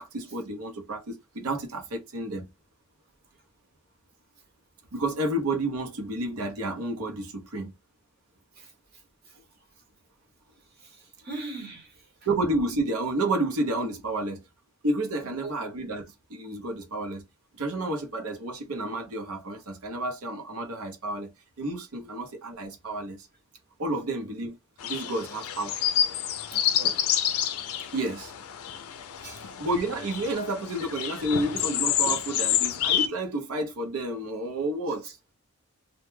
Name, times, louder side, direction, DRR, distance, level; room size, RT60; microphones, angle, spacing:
voice 1, 0.0-2.5 4.9-7.7 12.3-14.4 14.8-17.2 17.5-21.3 21.6-23.3 23.8-24.6 24.8-25.8 27.9-28.3 29.4-35.2, right 1 dB, 80° right, 0.7 m, -30 dB
voice 2, 11.2-11.9 15.2-15.5 26.5-27.0 29.2-29.4, right 2 dB, 45° right, 0.8 m, -40 dB
sound 1, 24.8-33.1, left 10 dB, 75° left, 0.4 m, -28 dB
2.2 x 2.1 x 3.1 m
head